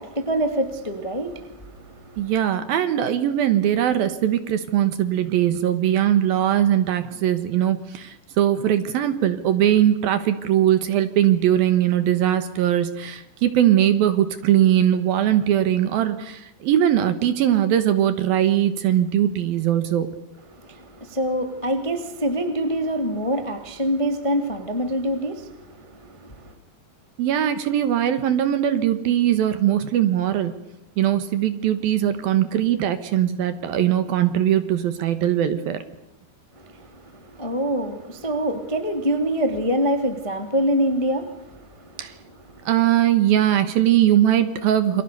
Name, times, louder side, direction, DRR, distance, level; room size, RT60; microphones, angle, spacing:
voice 1, 0.0-2.3 20.5-26.5 36.5-42.2 42.5-42.7, right 1 dB, 15° left, 6 dB, 1.3 m, -26 dB
voice 2, 2.2-20.1 27.2-30.6 31.0-35.8 42.0-42.1 42.7-45.0, right 11 dB, 65° right, 11 dB, 2.8 m, -20 dB
29.0 x 24.0 x 6.8 m, 0.83 s
omnidirectional pair, 5.0 m